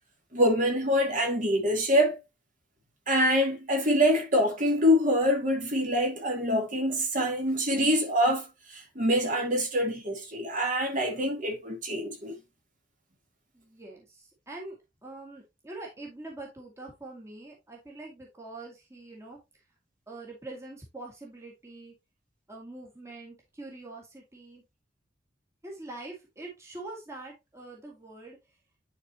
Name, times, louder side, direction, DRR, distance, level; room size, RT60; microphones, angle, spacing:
voice 1, 0.3-2.2 3.1-12.4, equal, 45° right, 2.2 m, -25 dB
voice 2, 13.5-14.8 15.0-19.4 20.1-21.9 22.5-24.6 25.6-28.4, right 2 dB, 15° right, 1.8 m, -44 dB
10.5 x 4.3 x 2.8 m
head